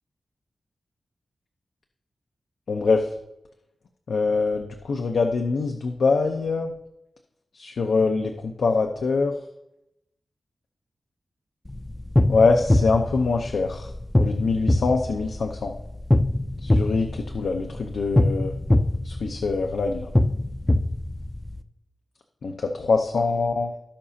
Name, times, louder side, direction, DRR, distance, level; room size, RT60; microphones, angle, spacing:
voice 1, 2.7-3.1 4.1-6.7 7.5-9.3 12.3-13.9 14.2-15.8 16.6-18.5 19.0-20.1 22.4-23.7, left 4 dB, 80° left, 4 dB, 0.8 m, -24 dB
sound 1, 11.7-21.6, left 1 dB, 10° left, 0.4 m, -24 dB
17.5 x 5.8 x 2.8 m, 0.84 s
wide cardioid pair, 180°, 0 cm